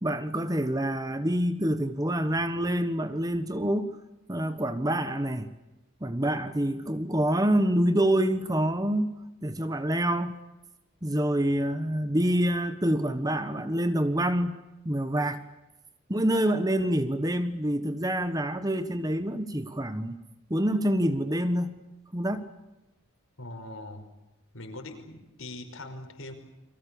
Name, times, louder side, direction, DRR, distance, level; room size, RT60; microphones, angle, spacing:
voice 1, 0.0-3.9 4.3-5.5 6.0-9.1 9.4-10.4 11.0-14.6 14.8-15.4 16.1-20.2 20.5-21.8 22.1-22.4, right 1 dB, 15° right, 11 dB, 1.3 m, -26 dB
voice 2, 23.4-24.1 24.5-26.3, left 2 dB, 75° left, 5 dB, 5.4 m, -41 dB
29.5 x 24.0 x 7.1 m, 0.97 s
head